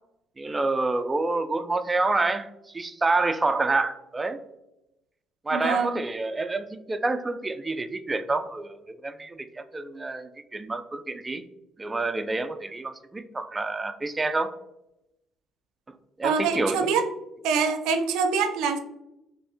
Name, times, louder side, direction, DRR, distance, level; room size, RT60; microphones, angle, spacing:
voice 1, 0.4-2.5 2.7-4.4 5.4-11.4 11.8-14.5 15.9-16.9, right 3 dB, 20° right, 10 dB, 0.3 m, -28 dB
voice 2, 5.5-6.0 16.2-17.1 17.4-18.8, right 5 dB, 85° right, 8 dB, 0.5 m, -25 dB
4.1 x 3.3 x 3.5 m, 0.90 s
cardioid pair, 115°, 0 cm